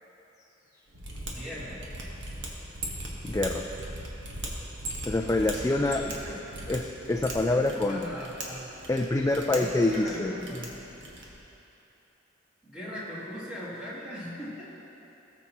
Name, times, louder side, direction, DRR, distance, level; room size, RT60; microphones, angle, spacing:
Mechanisms, 0.9-11.4, right 1 dB, 65° right, 1.4 m, -39 dB
voice 1, 1.3-1.8 5.4-6.4 7.4-8.7 9.4-10.7 12.6-14.6, equal, 5° right, -9 dB, 2.5 m, -39 dB
voice 2, 3.2-3.6 5.1-6.0 6.7-8.0 8.9-10.3, left 2 dB, 15° left, 1 dB, 0.4 m, -26 dB
17.5 x 7.2 x 3.0 m, 2.9 s
head